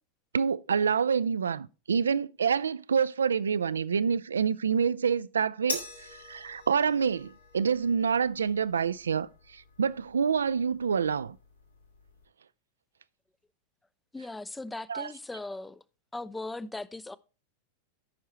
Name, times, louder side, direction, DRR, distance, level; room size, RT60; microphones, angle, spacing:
voice 1, 0.3-11.4 14.9-15.1, right 6 dB, 70° right, 0.3 m, -27 dB
sound 1, 5.7-12.3, left 3 dB, 80° left, 1.6 m, -44 dB
voice 2, 14.1-15.8 16.1-17.2, left 2 dB, 5° left, 0.4 m, -38 dB
13.5 x 5.5 x 3.0 m
figure-of-eight pair, 90°, 0 cm